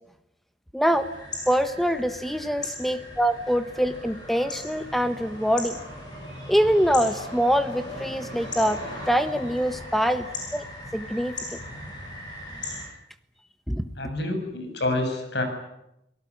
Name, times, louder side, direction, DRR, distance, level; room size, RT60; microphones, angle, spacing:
voice 1, 0.7-1.1 1.5-5.8 6.5-10.2 10.5-10.6 10.9-11.3 13.7-13.9, equal, ahead, 10 dB, 1.3 m, -24 dB
sound 1, 0.9-12.9, left 1 dB, 25° left, 7.7 m, -38 dB
voice 2, 14.0-15.4, left 2 dB, 70° left, 6 dB, 7.0 m, -27 dB
29.0 x 18.5 x 9.6 m, 0.83 s
head